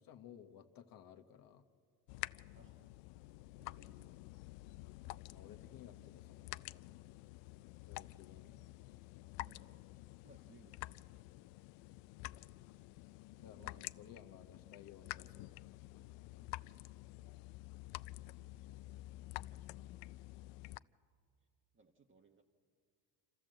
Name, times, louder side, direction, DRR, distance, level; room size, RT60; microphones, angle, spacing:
voice 1, 0.0-1.6 5.3-6.8 7.9-8.6 12.2-12.5 13.4-17.2 19.4-19.9, left 9 dB, 50° left, 6 dB, 1.2 m, -59 dB
sound 1, 2.1-20.8, left 19 dB, 90° left, 0.5 m, -50 dB
voice 2, 2.5-3.0 3.6-4.2 9.4-9.8 10.2-11.4 13.6-13.9 17.2-17.3 18.2-19.0 20.7-21.0 21.7-22.4, right 4 dB, 25° right, 2 dB, 1.2 m, -67 dB
28.0 x 13.5 x 7.7 m, 2.2 s
cardioid pair, 115°, 43 cm